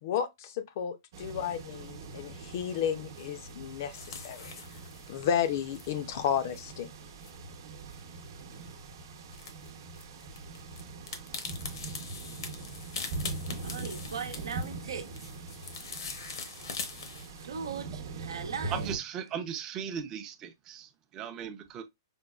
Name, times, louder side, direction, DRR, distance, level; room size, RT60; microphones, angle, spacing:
voice 1, 0.0-4.6 5.1-6.9, left 9 dB, 45° left, 0.5 m, -32 dB
sound 1, 1.1-19.0, right 3 dB, 55° right, 0.8 m, -42 dB
sound 2, 3.1-17.4, left 5 dB, 75° left, 0.9 m, -44 dB
voice 2, 13.6-15.3 17.4-18.9, right 6 dB, 85° right, 0.8 m, -39 dB
voice 3, 18.7-21.8, right 8 dB, 25° right, 0.5 m, -37 dB
5.1 x 2.2 x 2.3 m
hypercardioid pair, 150°, 2 cm